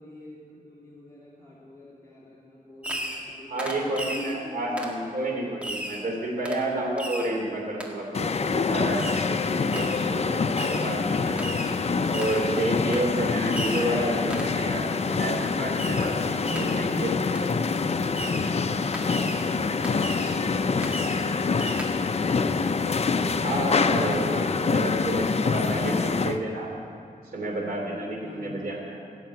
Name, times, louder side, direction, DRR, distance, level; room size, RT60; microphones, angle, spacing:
voice 1, 0.0-5.0 28.2-28.7, left 1 dB, 20° left, -7 dB, 2.8 m, -43 dB
Fireworks, 2.8-3.3 3.6-4.4 4.8-5.0 5.6-6.0 6.4-6.6 7.0-7.3 7.8-7.9 9.0-9.3 9.7-10.1 10.5-10.9 11.4-11.8 12.1-12.5 12.9-13.1 13.5-13.9 14.3-14.6 15.8-16.2 16.4-16.8 17.3-17.5 18.1-18.5 18.9-19.5 19.8-20.4 20.8-21.3 21.6-21.9, equal, 10° right, 1.8 m, -35 dB
voice 2, 3.5-11.4 12.1-17.1 23.3-26.7 27.3-29.0, right 1 dB, 90° right, -2 dB, 2.9 m, -30 dB
sound 1, 8.1-26.4, left 4 dB, 45° left, 0.6 m, -26 dB
16.5 x 7.7 x 9.5 m, 2.5 s
wide cardioid pair, 115°, 15 cm